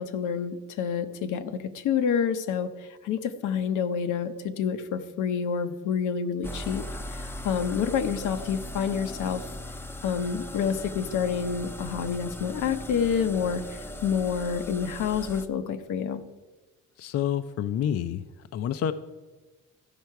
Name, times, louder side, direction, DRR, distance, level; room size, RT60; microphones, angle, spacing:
voice 1, 0.0-6.8 7.1-9.5 10.0-16.2, left 7 dB, 85° left, 8 dB, 0.8 m, -28 dB
sound 1, 6.4-15.5, left 1 dB, 10° left, 0.6 m, -39 dB
voice 2, 17.0-18.2 18.5-18.9, left 9 dB, 55° left, 10 dB, 0.5 m, -28 dB
14.0 x 5.5 x 4.6 m, 1.3 s
cardioid pair, 90°, 30 cm